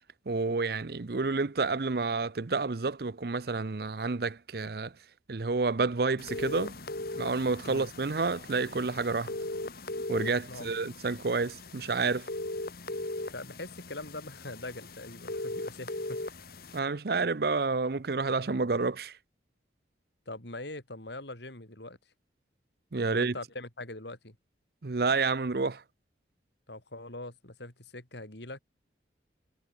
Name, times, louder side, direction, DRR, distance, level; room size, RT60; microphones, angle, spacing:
voice 1, 0.3-4.9 5.3-6.8 7.2-9.3 10.1-12.3 16.7-19.1 22.9-23.3 24.8-25.8, right 4 dB, 55° right, 0.7 m, -29 dB
sound 1, 6.2-16.8, left 2 dB, 55° left, 1.6 m, -39 dB
voice 2, 13.2-16.2 20.3-22.0 23.1-24.4 26.7-28.6, left 2 dB, 70° left, 4.2 m, -42 dB
head